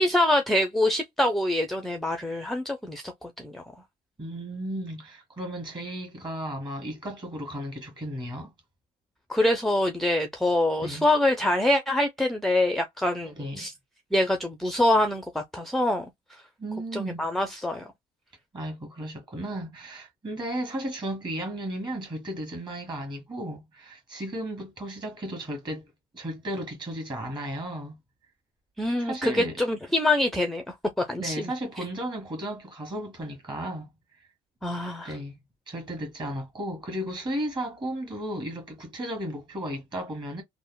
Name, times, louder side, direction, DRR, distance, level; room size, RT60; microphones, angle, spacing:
voice 1, 0.0-3.6 9.3-13.7 14.1-16.4 16.9-17.9 28.8-31.5 34.6-35.2, left 1 dB, ahead, 0.5 m, -25 dB
voice 2, 4.2-8.5 10.8-11.1 13.4-13.7 16.6-17.3 18.5-25.9 26.1-28.0 29.0-29.6 31.2-33.9 35.0-35.4 35.7-40.4, right 1 dB, 25° right, 1.6 m, -34 dB
3.5 x 2.0 x 2.2 m
cardioid pair, 110°, 17 cm